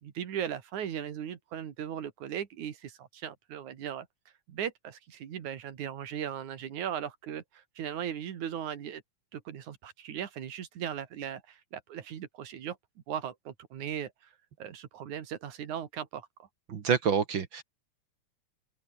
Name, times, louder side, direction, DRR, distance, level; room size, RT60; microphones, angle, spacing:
voice 1, 0.0-4.1 4.5-9.0 9.3-12.8 13.1-14.1 14.6-16.3, right 9 dB, 75° right, 3.4 m, -38 dB
voice 2, 16.7-17.6, right 6 dB, 50° right, 1.8 m, -27 dB
open air
omnidirectional pair, 3.5 m